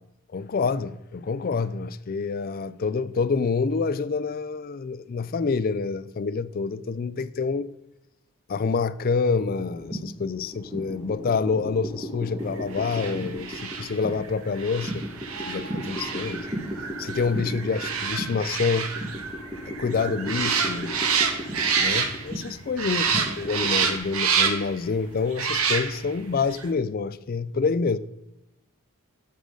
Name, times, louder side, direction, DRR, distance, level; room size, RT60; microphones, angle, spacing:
voice 1, 0.3-7.7 8.5-15.0 15.5-16.5 17.0-18.9 19.8-21.0 21.6-28.0, left 4 dB, 40° left, 0.3 m, -27 dB
sound 1, 9.4-24.0, equal, 15° right, 1.5 m, -36 dB
sound 2, 12.7-22.5 22.8-24.8 25.3-26.2 26.5-26.6, right 6 dB, 70° right, 1.0 m, -28 dB
8.3 x 6.3 x 3.8 m
head